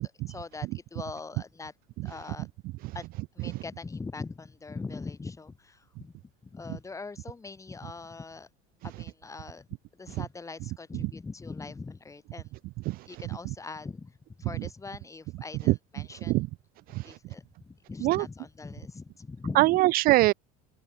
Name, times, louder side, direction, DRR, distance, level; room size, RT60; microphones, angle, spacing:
voice 1, 0.0-1.7 2.0-2.5 2.9-3.1 3.3-6.1 6.4-8.5 8.8-9.7 9.9-12.5 13.1-16.3 17.0-19.8, left 4 dB, 15° left, 1.4 m, -41 dB
voice 2, 19.6-20.3, right 19 dB, 50° right, 0.4 m, -22 dB
open air
hypercardioid pair, 85°, 19 cm